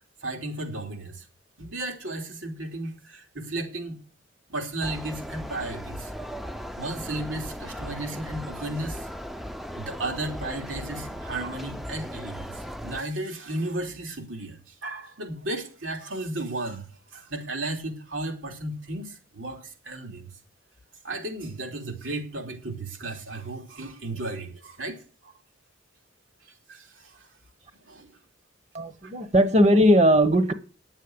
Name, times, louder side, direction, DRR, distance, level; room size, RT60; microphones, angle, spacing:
voice 1, 0.2-1.2 1.6-4.0 4.5-6.1 6.8-9.1 9.7-20.3 21.0-25.3 26.4-27.3 27.8-28.2 29.0-29.1, right 2 dB, 90° right, 3.1 m, -34 dB
sound 1, 4.8-13.0, equal, ahead, 0.6 m, -37 dB
voice 2, 28.7-30.5, equal, 35° right, 1.0 m, -19 dB
10.0 x 7.4 x 7.9 m
head